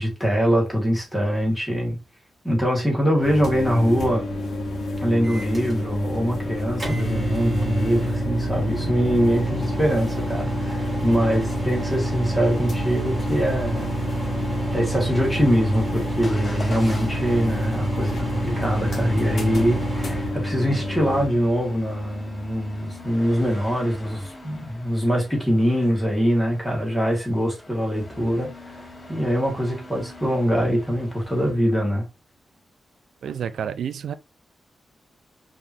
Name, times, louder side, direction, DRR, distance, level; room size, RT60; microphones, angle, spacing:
voice 1, 0.0-2.0 2.4-4.2 5.0-13.9 14.7-32.0, equal, 5° left, 1.7 m, -23 dB
sound 1, 3.2-21.3, left 1 dB, 60° left, 1.1 m, -30 dB
Microwave oven, 5.2-20.3, right 2 dB, 20° right, 2.0 m, -29 dB
Motor vehicle (road) / Engine starting / Accelerating revving vroom, 16.2-31.5, left 2 dB, 30° left, 1.1 m, -42 dB
voice 2, 33.2-34.1, right 8 dB, 90° right, 0.3 m, -29 dB
5.1 x 2.9 x 2.7 m
wide cardioid pair, 160°, 0 cm